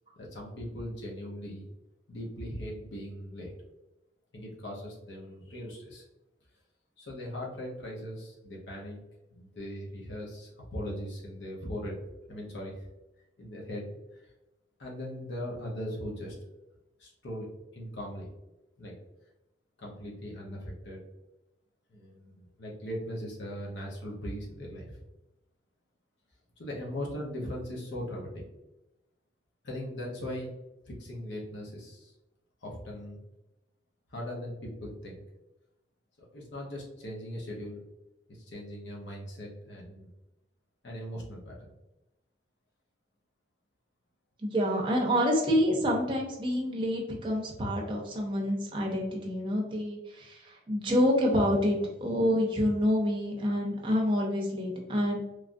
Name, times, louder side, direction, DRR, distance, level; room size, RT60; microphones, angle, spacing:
voice 1, 0.2-1.7 2.1-3.5 4.3-6.0 7.0-9.0 9.3-12.0 12.3-12.9 13.4-14.3 14.8-16.4 17.0-18.3 18.8-18.9 19.8-21.1 21.9-25.0 26.6-28.5 29.6-30.5 30.9-32.1 32.6-33.2 34.1-35.2 36.2-37.8 38.3-40.1 40.8-41.7, equal, 85° left, -3 dB, 0.7 m, -39 dB
voice 2, 44.4-55.2, equal, 25° right, -1 dB, 0.6 m, -27 dB
3.1 x 2.4 x 2.5 m, 0.97 s
head